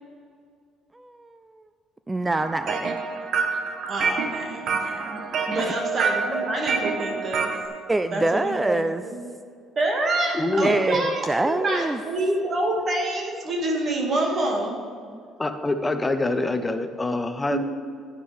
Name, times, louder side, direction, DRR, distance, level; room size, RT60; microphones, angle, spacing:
voice 1, 0.9-1.7 2.1-3.0 5.6-5.7 7.9-9.0 10.6-12.0 15.1-15.2, right 2 dB, 15° right, 10 dB, 0.4 m, -25 dB
sound 1, 2.3-7.7, right 5 dB, 65° right, 1.1 m, -27 dB
voice 2, 3.9-5.2 5.5-7.5 8.1-8.8 9.0-9.3 9.8-14.8 17.5-17.6, right 1 dB, 45° right, 0 dB, 2.1 m, -27 dB
voice 3, 10.3-10.7 15.4-17.6, left 2 dB, 20° left, 8 dB, 0.9 m, -25 dB
11.0 x 9.7 x 3.5 m, 2.2 s
supercardioid pair, 75°, 0 cm